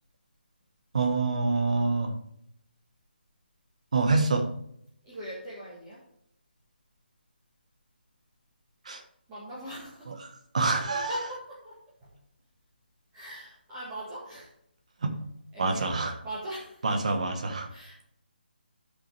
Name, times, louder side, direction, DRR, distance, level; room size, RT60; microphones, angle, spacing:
voice 1, 0.9-2.1 3.9-4.5 8.8-9.0 10.1-10.2 10.5-11.2 15.0-15.1 15.6-16.2 16.8-17.7, right 3 dB, 40° right, 5 dB, 1.3 m, -26 dB
voice 2, 5.0-6.0 9.3-10.1 10.6-10.7 11.1-12.1 13.1-14.5 15.5-16.0 16.2-16.9 17.7-18.0, right 1 dB, 10° right, -10 dB, 1.6 m, -40 dB
12.5 x 5.4 x 3.4 m, 0.71 s
hypercardioid pair, 180°, 6 cm